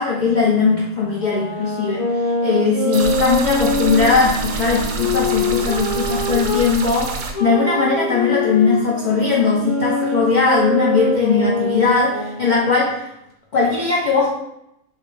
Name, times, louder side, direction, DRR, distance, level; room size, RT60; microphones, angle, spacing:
voice 1, 0.0-2.0 2.4-7.1 7.4-13.0 13.5-14.3, left 4 dB, 65° left, -4 dB, 0.4 m, -19 dB
sound 1, 1.2-6.7 7.3-12.9, left 2 dB, 85° left, 1.4 m, -24 dB
sound 2, 2.9-7.3, right 4 dB, 85° right, 1.2 m, -27 dB
6.1 x 2.1 x 3.2 m, 0.83 s
omnidirectional pair, 1.6 m